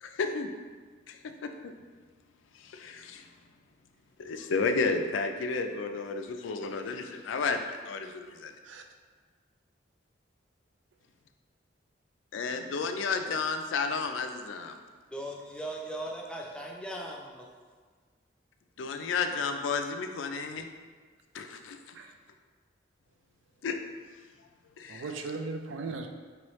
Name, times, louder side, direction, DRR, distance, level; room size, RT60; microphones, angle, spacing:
voice 1, 0.0-0.5 1.1-1.2 1.6-1.7 2.6-3.2 4.2-8.5 12.3-14.7 18.8-20.7 21.3-21.8 23.6-23.8 24.8-25.1, left 4 dB, 90° left, 6 dB, 0.4 m, -32 dB
voice 2, 15.1-17.5, right 1 dB, 5° left, -1 dB, 0.4 m, -38 dB
voice 3, 24.9-26.1, right 3 dB, 85° right, 5 dB, 0.4 m, -37 dB
4.7 x 3.0 x 3.0 m, 1.5 s
head